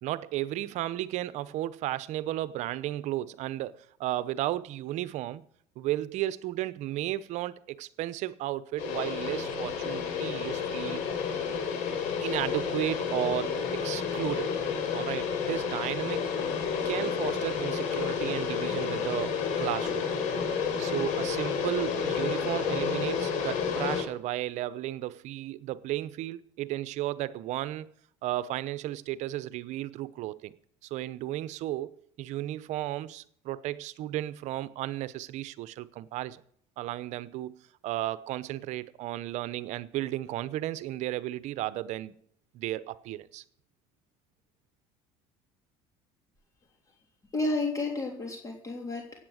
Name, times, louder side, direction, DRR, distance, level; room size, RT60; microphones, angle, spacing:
voice 1, 0.0-5.4 5.8-11.0 12.2-14.6 14.9-16.3 16.8-20.0 20.8-27.9 28.2-30.6 30.8-36.4 36.8-37.5 37.8-42.1 42.5-43.4, right 14 dB, 60° right, 0.8 m, -34 dB
sound 1, 8.8-24.0, left 6 dB, 70° left, 3.9 m, -30 dB
voice 2, 47.3-49.3, left 2 dB, 25° left, 3.3 m, -31 dB
16.5 x 8.9 x 6.4 m
cardioid pair, 115°, 13 cm